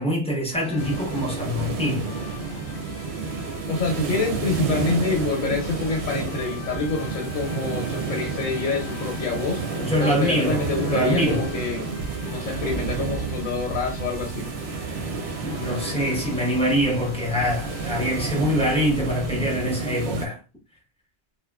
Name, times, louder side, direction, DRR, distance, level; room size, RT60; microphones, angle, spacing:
voice 1, 0.0-2.1 9.8-11.5 14.8-15.1 15.4-20.4, equal, 5° left, 0.5 m, -24 dB
sound 1, 0.5-19.5, left 4 dB, 65° left, 0.8 m, -40 dB
sound 2, 0.8-20.3, right 5 dB, 65° right, 0.7 m, -30 dB
voice 2, 3.7-9.6 10.0-12.0 12.3-14.5, left 3 dB, 85° left, 1.1 m, -27 dB
2.8 x 2.2 x 2.2 m
omnidirectional pair, 1.3 m